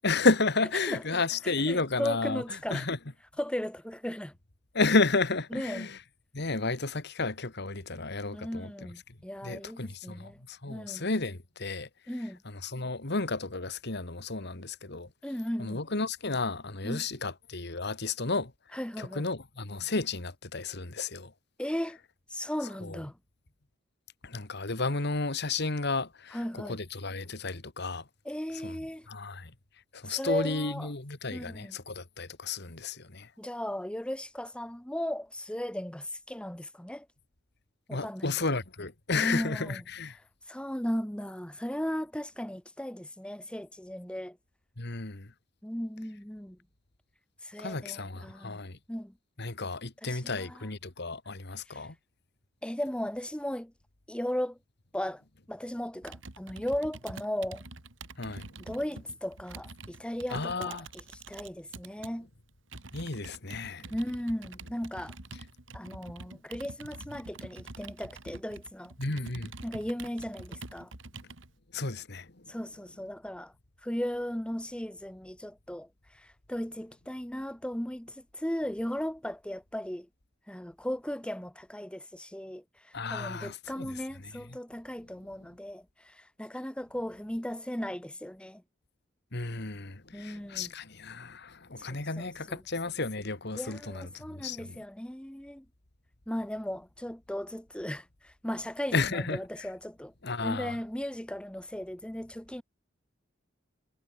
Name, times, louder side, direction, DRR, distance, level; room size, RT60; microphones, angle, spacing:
voice 1, 0.0-2.4 2.7-3.0 4.7-6.0 6.3-8.7 9.4-11.9 12.6-15.1 15.6-18.5 19.0-21.3 22.8-23.0 24.2-26.4 26.7-28.0 28.6-28.7 29.1-29.5 29.9-33.3 37.9-40.2 44.8-45.3 47.6-48.8 49.4-51.9 58.2-58.5 60.3-60.9 62.9-63.9 69.0-69.5 71.7-72.5 82.9-83.9 89.3-94.8 98.9-99.4 100.2-100.8, left 3 dB, 60° left, 2.2 m, -32 dB
voice 2, 0.8-2.9 3.4-4.3 5.5-5.9 8.3-10.4 10.7-11.1 12.1-12.4 15.2-15.8 16.8-17.1 18.7-19.3 21.6-22.0 22.3-23.2 26.3-26.8 28.2-29.1 30.0-30.9 31.3-31.8 33.4-37.1 37.9-38.5 39.1-39.8 40.5-44.4 45.6-46.6 47.4-48.6 48.9-49.1 50.0-50.7 51.7-51.9 52.6-53.7 54.1-54.6 54.9-55.2 55.5-57.6 58.6-62.3 63.9-65.2 65.7-68.9 69.6-70.9 72.5-73.5 73.8-80.1 80.5-88.6 90.1-90.7 91.9-92.6 93.5-95.7 96.3-100.1 100.4-102.6, equal, 5° left, 1.2 m, -36 dB
Computer keyboard, 56.0-62.1 62.7-71.5, right 3 dB, 70° right, 2.6 m, -46 dB
head